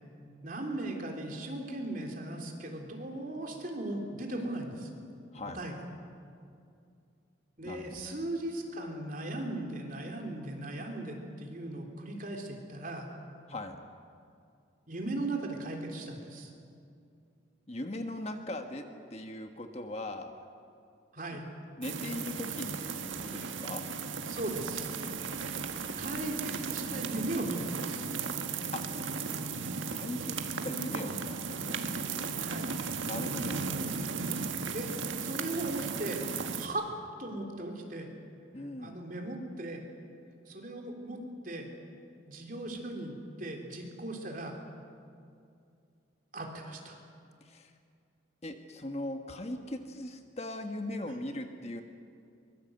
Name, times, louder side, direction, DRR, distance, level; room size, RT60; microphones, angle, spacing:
voice 1, 0.4-4.9 5.5-5.7 7.6-13.1 14.9-16.5 21.1-21.5 24.3-24.9 26.0-28.1 32.3-32.7 34.7-34.9 35.2-36.2 36.6-36.9 37.2-38.1 38.8-39.8 40.5-41.2 41.4-41.7 42.2-44.5 46.3-47.0, right 1 dB, 45° right, 2 dB, 3.4 m, -38 dB
voice 2, 7.6-8.1 13.5-13.8 17.7-20.3 21.3-21.4 21.8-23.8 28.7-28.8 29.9-31.8 33.0-33.6 38.5-39.0 47.4-47.7 48.4-51.8, left 1 dB, 35° left, 5 dB, 1.4 m, -39 dB
sound 1, 21.8-36.7, right 5 dB, 80° right, 1.7 m, -36 dB
23.5 x 22.0 x 7.9 m, 2.4 s
head